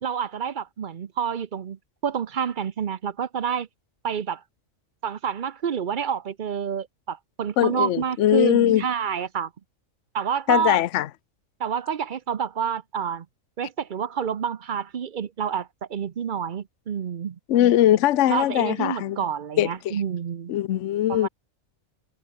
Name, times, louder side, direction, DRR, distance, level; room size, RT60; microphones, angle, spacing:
voice 1, 0.0-3.7 4.0-4.4 5.0-9.5 10.1-10.8 11.6-13.3 13.6-17.4 18.3-20.5 21.1-21.3, right 7 dB, 45° right, 0.7 m, -28 dB
voice 2, 7.6-8.8 10.5-11.1 17.5-19.2 19.6-20.0 20.5-21.3, left 12 dB, 65° left, 1.0 m, -21 dB
omnidirectional pair, 1.4 m